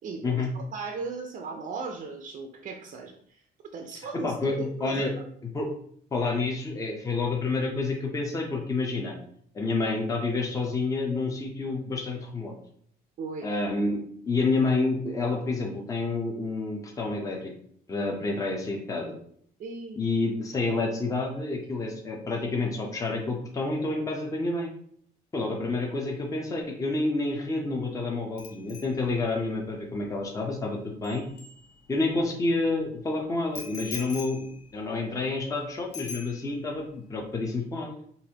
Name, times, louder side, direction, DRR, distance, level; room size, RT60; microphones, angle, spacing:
voice 1, 0.0-3.4 3.7-5.3 13.2-13.5 19.6-20.0, right 4 dB, 50° right, 3 dB, 0.5 m, -37 dB
voice 2, 4.2-5.1 5.5-5.7 6.1-9.1 9.5-12.5 13.4-14.0 14.3-17.5 17.9-19.2 20.0-24.7 25.3-31.2 31.9-34.5 34.7-37.9, left 3 dB, 20° left, 0 dB, 0.6 m, -29 dB
Bicycle bell, 28.4-32.2 33.5-35.6 35.9-36.8 37.1-37.4, left 6 dB, 80° left, 0.8 m, -44 dB
4.0 x 2.5 x 2.8 m, 0.63 s
cardioid pair, 110°, 17 cm